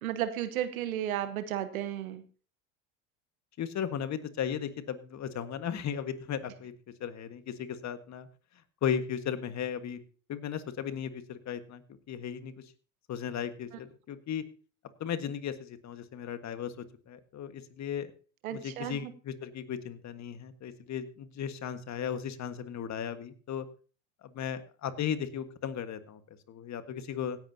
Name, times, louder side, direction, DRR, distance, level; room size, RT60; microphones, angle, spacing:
voice 1, 0.0-2.2 18.4-19.1, right 11 dB, 85° right, 11 dB, 1.2 m, -33 dB
voice 2, 3.6-6.7 7.0-8.3 8.8-10.0 10.3-11.8 12.1-12.5 13.1-14.4 15.0-16.7 17.1-18.1 18.5-23.7 24.3-26.2 26.5-27.4, left 8 dB, 40° left, 10 dB, 1.6 m, -36 dB
17.0 x 10.5 x 2.8 m, 0.38 s
hypercardioid pair, 80°, 41 cm